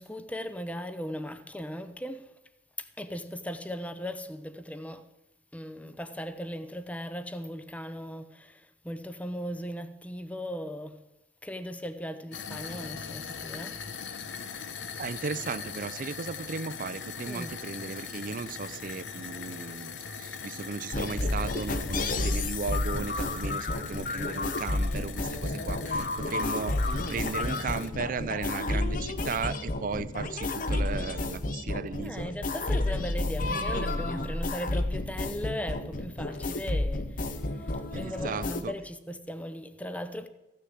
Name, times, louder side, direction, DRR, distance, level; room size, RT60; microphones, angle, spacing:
voice 1, 0.0-2.3 2.8-5.1 5.5-11.0 11.4-13.8 17.3-17.5 32.0-40.3, equal, 10° left, 0.6 m, -38 dB
sound 1, 12.3-27.9, left 6 dB, 90° left, 0.9 m, -41 dB
voice 2, 15.0-26.7 27.1-32.3 37.9-38.7, right 5 dB, 50° right, 0.5 m, -36 dB
sound 2, 20.9-38.6, left 2 dB, 50° left, 0.8 m, -31 dB
15.0 x 6.6 x 7.8 m
head